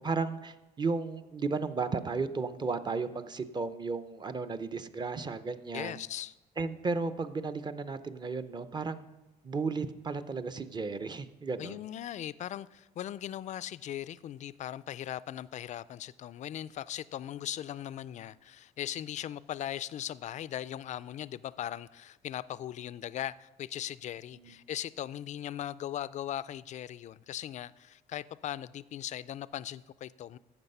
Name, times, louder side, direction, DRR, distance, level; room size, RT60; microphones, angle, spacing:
voice 1, 0.0-6.0 6.6-9.1 9.4-11.9 24.4-24.5, right 4 dB, 25° right, 0.6 m, -34 dB
voice 2, 5.7-6.3 11.6-30.4, left 11 dB, 45° left, 0.4 m, -39 dB
12.0 x 7.8 x 5.4 m
cardioid pair, 110°, 17 cm